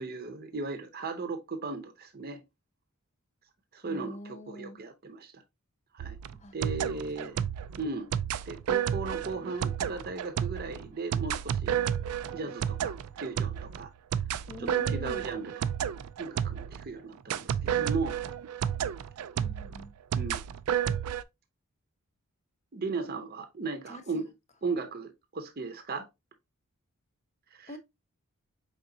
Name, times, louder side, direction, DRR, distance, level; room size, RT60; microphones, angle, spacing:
voice 1, 0.0-2.4 3.7-5.4 5.9-6.2 6.5-7.4 7.8-8.1 8.5-11.8 12.3-12.9 13.2-13.9 14.6-15.6 16.2-18.2 20.1-20.4 22.7-24.3 24.6-26.1 27.5-27.7, right 3 dB, 45° right, 0.7 m, -36 dB
voice 2, 3.8-4.8 6.4-6.6 7.3-7.5 14.5-15.2 19.3-19.9 23.9-24.3 27.7-27.8, left 1 dB, 30° left, 0.6 m, -44 dB
sound 1, 6.0-16.9 17.3-21.2, right 9 dB, 80° right, 0.3 m, -31 dB
4.9 x 3.7 x 2.6 m
head